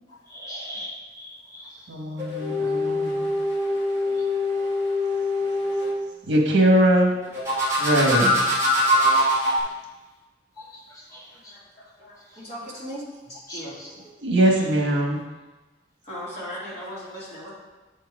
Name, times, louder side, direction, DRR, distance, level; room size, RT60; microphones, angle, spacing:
voice 1, 0.3-1.7 9.2-9.6 11.1-11.2 13.5-13.6, equal, 20° left, -4 dB, 1.5 m, -39 dB
voice 2, 1.9-3.4 6.2-7.1 7.8-8.5 13.9-15.3, right 1 dB, 80° right, 0 dB, 1.3 m, -21 dB
sound 1, 2.2-6.0 7.3-9.6, left 1 dB, 15° right, 2.2 m, -23 dB
voice 3, 11.5-13.0 13.3-13.8 16.1-17.5, equal, 35° left, -8 dB, 2.7 m, -38 dB
7.7 x 4.6 x 4.8 m, 1.2 s
head